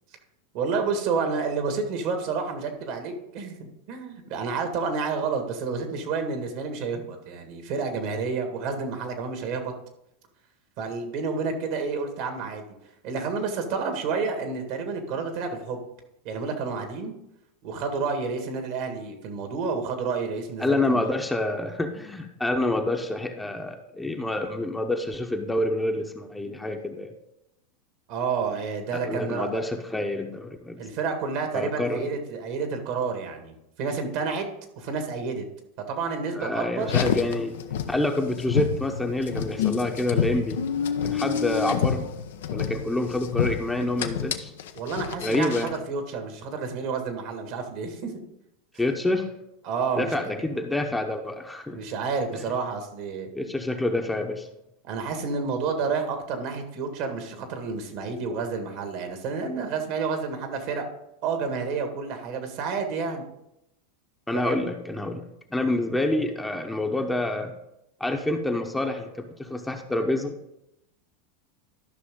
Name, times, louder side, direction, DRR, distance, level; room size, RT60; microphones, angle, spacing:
voice 1, 0.5-9.7 10.8-12.7 13.0-15.8 16.3-17.1 17.6-21.1 28.1-29.6 30.8-33.5 33.8-34.4 34.8-35.4 35.9-37.0 44.8-48.1 49.6-50.4 51.7-53.3 54.8-60.8 61.2-63.3 64.3-64.7, right 5 dB, 60° right, 5 dB, 1.8 m, -30 dB
voice 2, 20.6-27.1 28.9-30.8 31.5-32.1 36.3-37.5 37.9-40.6 41.0-42.1 42.5-44.5 45.2-45.7 48.8-49.3 50.0-51.8 53.3-54.5 64.3-65.2 65.5-67.5 68.0-70.4, left 2 dB, 10° left, 4 dB, 0.9 m, -27 dB
Car, 36.8-45.8, left 8 dB, 75° left, 0.7 m, -29 dB
13.0 x 5.8 x 3.7 m, 0.85 s
hypercardioid pair, 95°, 0 cm